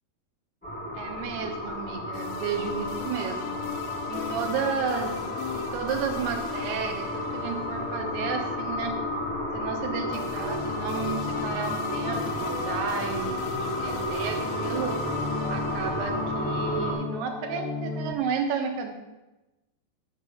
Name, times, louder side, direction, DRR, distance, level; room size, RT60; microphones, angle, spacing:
sound 1, 0.6-16.9, left 1 dB, 5° left, 2.6 m, -32 dB
voice 1, 0.9-3.6 4.1-5.1 5.5-9.0 9.5-12.3 12.6-15.0 15.5-18.9, right 6 dB, 80° right, 4 dB, 3.1 m, -32 dB
sound 2, 2.1-18.1, left 6 dB, 75° left, 2.5 m, -36 dB
10.5 x 4.8 x 7.0 m, 1.0 s
omnidirectional pair, 4.6 m